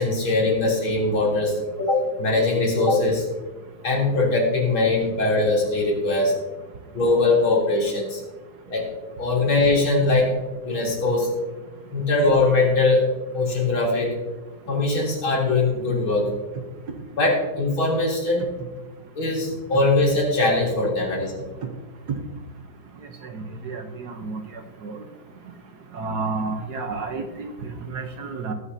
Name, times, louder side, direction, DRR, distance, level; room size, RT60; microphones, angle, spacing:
voice 1, 0.0-3.3 3.8-6.3 6.9-8.2 8.7-8.9 9.2-10.3 10.6-11.3 11.9-13.0 13.3-14.1 14.7-16.3 17.2-18.5 19.2-21.5, left 2 dB, 90° left, -4 dB, 4.1 m, -21 dB
voice 2, 23.3-24.4 24.8-25.0 25.9-28.5, right 4 dB, 60° right, 6 dB, 1.4 m, -31 dB
21.0 x 8.2 x 2.8 m, 1.2 s
omnidirectional pair, 2.2 m